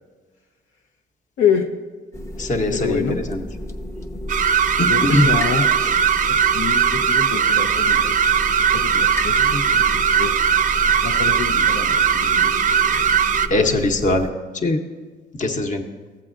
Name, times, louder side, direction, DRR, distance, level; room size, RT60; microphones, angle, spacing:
voice 1, 1.4-1.7 2.7-3.2 4.9-5.6 6.5-8.2 8.7-10.3 11.0-13.1 13.7-13.8, left 6 dB, 85° left, 4 dB, 0.7 m, -26 dB
sound 1, 2.1-14.3, left 1 dB, 15° left, 0.6 m, -32 dB
voice 2, 2.4-3.4 4.8-5.3 5.8-5.9 13.5-14.3 14.5-14.8 15.3-15.8, left 2 dB, 40° left, 4 dB, 1.0 m, -20 dB
sound 2, 4.3-13.5, right 7 dB, 40° right, 0.4 m, -19 dB
15.0 x 7.5 x 2.5 m, 1.4 s
cardioid pair, 90°, 20 cm